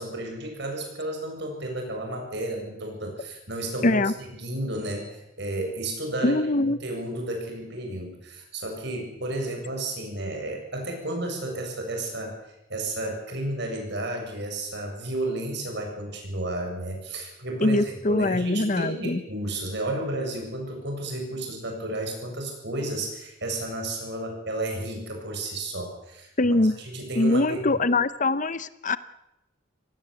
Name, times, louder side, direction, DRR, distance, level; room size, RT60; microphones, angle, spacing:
voice 1, 0.0-12.4 12.7-27.8, right 1 dB, 55° right, 3 dB, 7.6 m, -32 dB
voice 2, 3.8-4.1 6.2-6.8 17.6-19.2 26.4-26.7 27.2-29.0, left 2 dB, 40° left, 15 dB, 0.8 m, -23 dB
26.5 x 18.5 x 8.3 m, 0.88 s
head